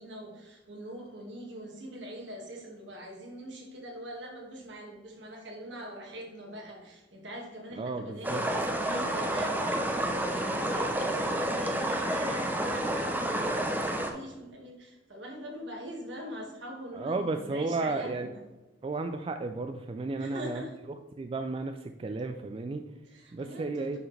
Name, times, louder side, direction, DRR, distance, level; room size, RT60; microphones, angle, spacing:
voice 1, 0.0-18.4 20.2-20.8 23.0-24.0, equal, 70° right, 0 dB, 1.8 m, -43 dB
voice 2, 7.7-8.5 16.9-18.3 18.8-20.6 21.2-22.8 23.3-24.0, right 3 dB, 30° right, 7 dB, 0.3 m, -33 dB
sound 1, 8.2-14.1, right 1 dB, 10° right, 0.7 m, -30 dB
9.8 x 4.6 x 3.2 m, 1.1 s
head